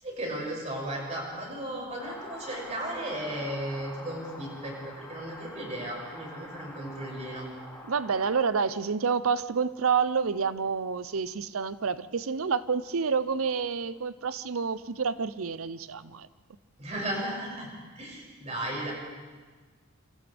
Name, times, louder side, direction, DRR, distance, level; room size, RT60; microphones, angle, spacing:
voice 1, 0.0-7.5 16.8-17.7 18.0-18.9, right 1 dB, 35° right, 6.8 m, -35 dB
sound 1, 2.0-8.4, left 1 dB, 10° left, 3.7 m, -45 dB
voice 2, 7.9-16.3, right 5 dB, 90° right, 0.7 m, -28 dB
28.0 x 26.0 x 3.5 m
head